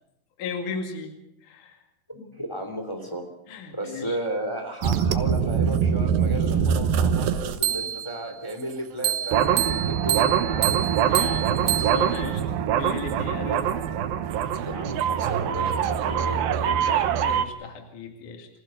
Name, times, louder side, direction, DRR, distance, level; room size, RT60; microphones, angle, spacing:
voice 1, 0.4-1.1 1.4-1.8 3.5-4.2 11.1-13.7 17.2-18.5, left 5 dB, 60° left, 4 dB, 3.6 m, -36 dB
voice 2, 2.1-3.3 3.7-10.8 13.6-13.8 14.6-17.1, right 1 dB, 10° left, 4 dB, 2.6 m, -34 dB
sound 1, 4.8-8.2 9.0-17.4, right 8 dB, 80° right, 2.8 m, -23 dB
28.0 x 15.5 x 6.6 m, 0.82 s
omnidirectional pair, 4.1 m